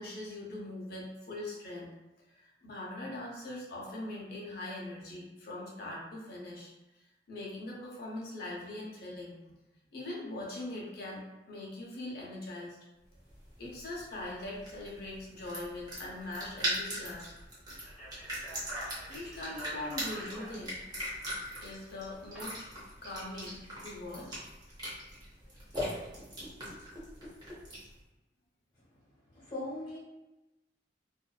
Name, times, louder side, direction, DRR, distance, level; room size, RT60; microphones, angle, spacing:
voice 1, 0.0-1.9 2.3-6.7 7.3-9.3 9.9-11.2 11.5-12.8 13.6-17.3 19.1-20.8 21.6-22.6 23.0-24.4, left 1 dB, 60° left, -3 dB, 0.7 m, -41 dB
sound 1, 13.1-28.0, equal, 25° right, 0.9 m, -40 dB
Speech, 17.8-22.4, equal, ahead, 1.1 m, -48 dB
voice 2, 29.3-30.0, left 1 dB, 25° left, -12 dB, 1.2 m, -39 dB
2.5 x 2.3 x 2.3 m, 1.0 s
head